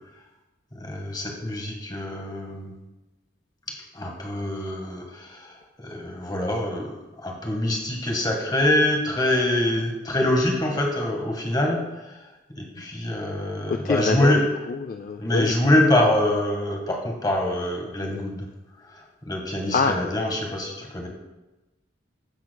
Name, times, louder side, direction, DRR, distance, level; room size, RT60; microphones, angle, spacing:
voice 1, 0.7-2.7 3.9-6.9 7.2-12.2 12.6-14.5 15.2-18.5 18.8-21.1, left 1 dB, 20° left, 1 dB, 1.5 m, -25 dB
voice 2, 13.7-14.3 14.7-15.5 19.7-20.0, left 4 dB, 45° left, 6 dB, 0.3 m, -25 dB
15.5 x 7.1 x 2.2 m, 1.1 s
head